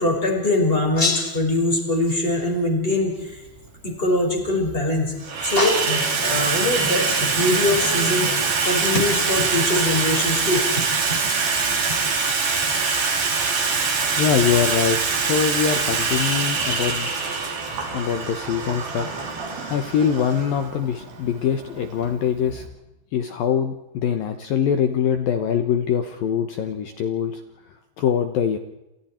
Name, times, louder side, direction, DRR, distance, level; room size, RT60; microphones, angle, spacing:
voice 1, 0.0-3.4 3.8-5.1 5.4-8.3 8.6-10.6, left 2 dB, 10° left, 1 dB, 5.2 m, -22 dB
Water tap faucet / Sink (filling or washing), 3.3-3.4 4.4-4.8 5.1-22.7, right 4 dB, 50° right, 4.9 m, -24 dB
voice 2, 14.2-17.1 17.9-19.1 19.7-22.6 23.1-27.4 28.0-28.6, left 8 dB, 70° left, 8 dB, 2.2 m, -23 dB
28.5 x 28.0 x 4.5 m, 0.97 s
omnidirectional pair, 5.6 m